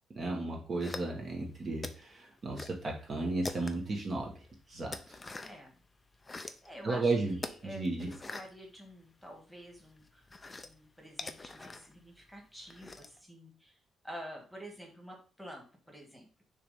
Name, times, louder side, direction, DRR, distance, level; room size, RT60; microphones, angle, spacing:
voice 1, 0.1-4.3 4.7-5.2 6.8-7.4 7.6-8.1, right 2 dB, 30° right, -1 dB, 1.2 m, -34 dB
sound 1, 0.8-1.4 1.8-2.8 3.1-4.0 4.4-5.7 6.1-6.7 7.4-9.4 9.7-13.2, left 3 dB, 15° left, 0.5 m, -44 dB
voice 2, 5.4-5.8 6.6-10.2 10.6-13.8 14.0-16.2, equal, ahead, 1 dB, 1.6 m, -49 dB
6.7 x 3.2 x 5.5 m, 0.38 s
cardioid pair, 170°, 0 cm